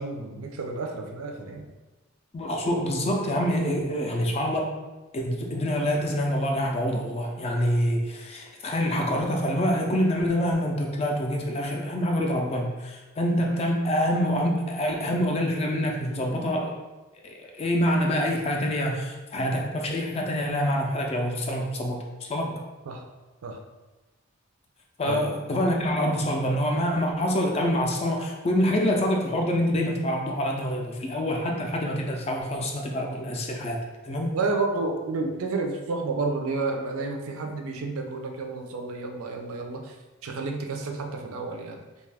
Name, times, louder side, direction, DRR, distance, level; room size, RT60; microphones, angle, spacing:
voice 1, 0.0-1.7 22.5-22.6 22.9-23.0 23.4-23.6 25.1-25.3 34.3-40.0 40.2-41.8, right 3 dB, 85° right, 3 dB, 0.4 m, -30 dB
voice 2, 2.3-4.8 5.1-16.8 17.2-22.6 25.0-33.8 34.0-34.4, equal, 30° left, 1 dB, 0.3 m, -26 dB
2.6 x 2.3 x 3.3 m, 1.1 s
head